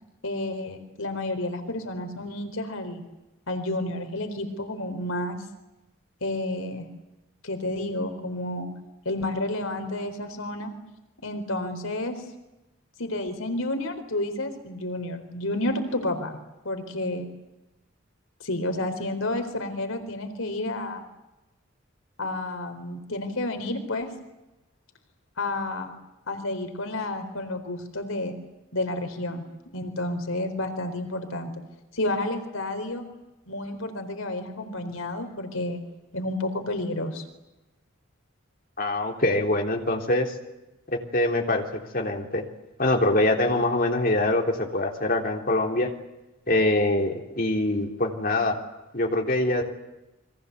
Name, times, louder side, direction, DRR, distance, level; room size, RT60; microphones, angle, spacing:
voice 1, 0.2-3.0 3.5-5.4 6.2-6.9 7.4-8.7 9.0-10.7 11.2-12.2 13.0-16.4 16.6-17.3 18.4-21.0 22.2-24.1 25.4-26.0 26.3-28.4 28.7-29.4 29.7-31.5 31.9-33.1 33.5-35.8 36.1-37.2, left 1 dB, 85° left, 7 dB, 4.2 m, -30 dB
voice 2, 38.8-40.3 40.9-42.4 42.8-45.9 46.5-48.6 48.9-49.7, left 1 dB, 45° left, 2 dB, 3.5 m, -24 dB
29.5 x 23.5 x 8.3 m, 1.0 s
head